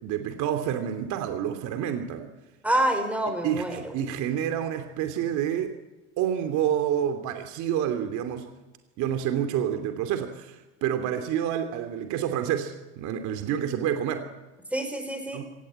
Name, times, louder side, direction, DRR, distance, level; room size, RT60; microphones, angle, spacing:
voice 1, 0.0-2.3 3.4-5.7 6.2-8.5 9.0-14.3 15.3-15.4, right 9 dB, 60° right, 7 dB, 2.8 m, -28 dB
voice 2, 2.6-3.9 14.7-15.4, right 1 dB, 5° right, 5 dB, 5.5 m, -27 dB
25.0 x 18.0 x 8.9 m, 1.1 s
cardioid pair, 130°, 33 cm